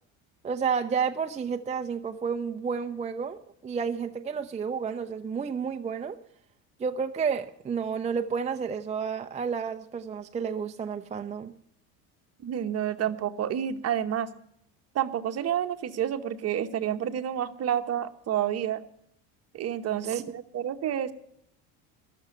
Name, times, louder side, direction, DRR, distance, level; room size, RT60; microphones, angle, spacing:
voice 1, 0.4-6.2 6.8-11.5 20.0-20.2, right 6 dB, 20° right, 0.5 m, -31 dB
voice 2, 12.4-14.3 14.9-18.8 19.5-21.1, right 10 dB, 45° right, 1.0 m, -29 dB
13.5 x 6.9 x 9.1 m
supercardioid pair, 105°, 35 cm